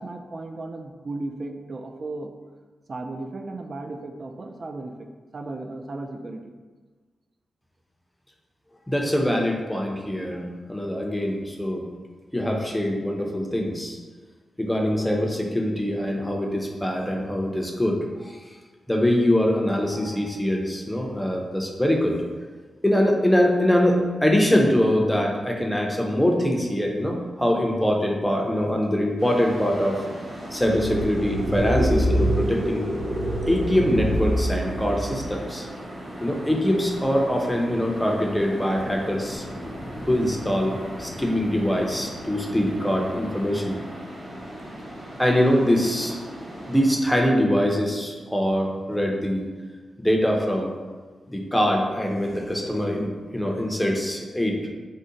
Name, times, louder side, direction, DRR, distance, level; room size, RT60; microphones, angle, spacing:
voice 1, 0.0-2.3 2.9-5.1 5.3-6.4, right 2 dB, 45° right, 6 dB, 0.3 m, -35 dB
voice 2, 8.9-11.8 12.3-14.0 14.6-18.5 18.9-22.2 22.8-30.0 30.5-32.9 33.5-35.7 36.2-39.4 40.1-43.8 45.2-46.2 46.7-49.5 50.0-50.7 51.3-54.6, equal, 5° left, 0 dB, 0.5 m, -23 dB
sound 1, 29.2-47.0, right 1 dB, 60° right, 1.0 m, -38 dB
sound 2, 30.5-35.4, equal, 90° right, 1.3 m, -25 dB
sound 3, 36.3-43.2, left 1 dB, 60° left, 0.6 m, -42 dB
3.7 x 2.1 x 3.8 m, 1.4 s
cardioid pair, 95°, 0 cm